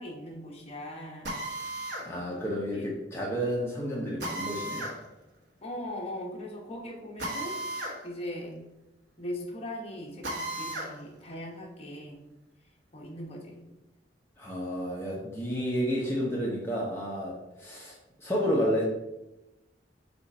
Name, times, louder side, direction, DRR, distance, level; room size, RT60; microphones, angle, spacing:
voice 1, 0.0-1.4 2.7-2.9 5.6-7.6 8.0-8.6 9.2-12.2 12.9-13.6, left 1 dB, 35° left, -1 dB, 1.2 m, -39 dB
Drill, 1.2-2.1 4.2-5.0 7.2-8.0 8.3-8.4 10.2-10.9, right 1 dB, 75° right, 1.3 m, -34 dB
voice 2, 2.0-4.9 14.4-18.8, equal, 15° left, -4 dB, 0.8 m, -31 dB
6.9 x 2.5 x 5.4 m, 0.99 s
head